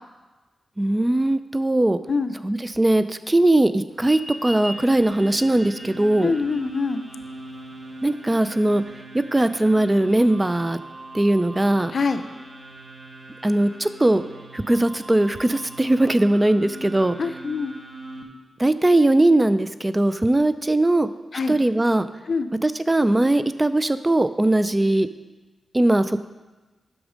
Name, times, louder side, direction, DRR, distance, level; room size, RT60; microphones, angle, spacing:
voice 1, 0.8-2.0 2.4-6.3 8.0-8.8 9.3-10.8 11.1-11.9 13.4-14.2 14.5-17.2 18.6-21.1 21.5-22.1 22.6-25.1 25.7-26.2, right 1 dB, 20° right, 13 dB, 0.4 m, -20 dB
sound 1, 3.9-18.2, right 2 dB, 55° right, 1.3 m, -41 dB
sound 2, 4.0-9.0, equal, 5° left, 1.0 m, -40 dB
voice 2, 6.2-7.0 11.9-12.2 17.2-17.8 21.3-21.6 22.3-22.5, left 4 dB, 60° left, 9 dB, 0.6 m, -24 dB
8.2 x 6.2 x 5.1 m, 1.2 s
cardioid pair, 50°, 0 cm